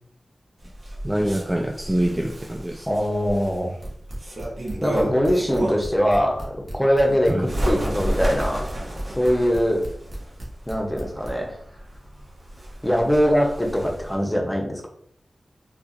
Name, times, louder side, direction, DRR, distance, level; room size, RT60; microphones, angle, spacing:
Bird, 0.6-6.0 6.5-14.2, right 1 dB, 60° right, 1.2 m, -32 dB
voice 1, 1.0-2.9 7.3-7.5, right 1 dB, 15° right, 2 dB, 0.4 m, -25 dB
voice 2, 2.9-3.7 4.8-8.8 9.2-9.8 10.7-11.6 12.8-14.9, equal, 10° left, 0 dB, 0.8 m, -22 dB
sound 1, 3.8-11.3, right 1 dB, 40° right, 1.4 m, -36 dB
4.4 x 2.4 x 2.6 m, 0.67 s
wide cardioid pair, 70°, 0 cm